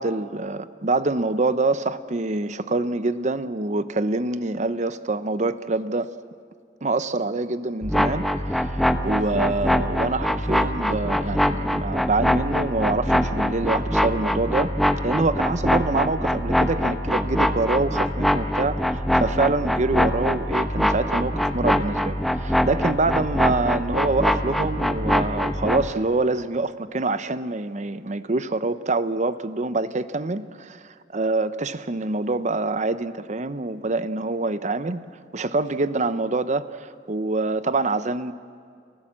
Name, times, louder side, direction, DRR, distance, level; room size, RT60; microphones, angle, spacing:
voice 1, 0.0-6.1 6.8-14.7 15.0-30.8 31.1-35.0 35.3-38.3, right 3 dB, 40° right, 13 dB, 0.7 m, -25 dB
sound 1, 7.8-25.9, equal, ahead, 0.8 m, -23 dB
29.5 x 15.5 x 7.5 m, 2.2 s
head